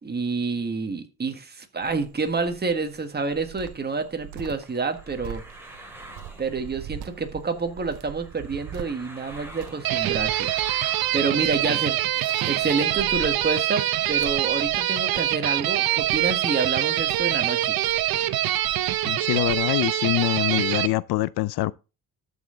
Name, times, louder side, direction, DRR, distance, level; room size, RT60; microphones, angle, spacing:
voice 1, 0.0-5.4 6.4-10.5 11.1-12.2 12.5-17.8, right 4 dB, 25° right, 1.5 m, -28 dB
Cricket, 1.8-19.6, right 10 dB, 90° right, 1.1 m, -43 dB
sound 1, 2.6-13.7, right 1 dB, 5° right, 3.1 m, -47 dB
sound 2, 9.8-20.9, right 13 dB, 70° right, 0.7 m, -24 dB
voice 2, 19.0-21.7, left 18 dB, 80° left, 0.5 m, -24 dB
13.5 x 5.7 x 3.8 m
cardioid pair, 110°, 38 cm